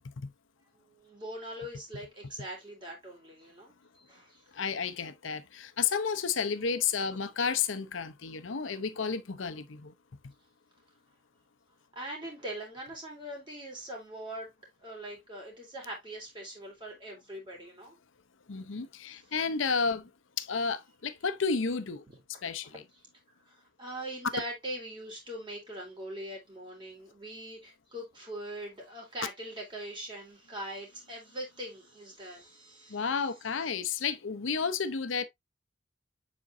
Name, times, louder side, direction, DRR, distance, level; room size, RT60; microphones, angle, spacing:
voice 1, 0.7-4.7 11.9-14.5 14.8-18.0 19.1-19.2 23.5-33.0, right 1 dB, 25° right, 3.7 m, -42 dB
voice 2, 4.5-9.9 18.5-20.1 20.4-22.0 22.4-22.8 32.9-35.2, left 5 dB, 90° left, 0.7 m, -31 dB
7.5 x 5.2 x 2.6 m
head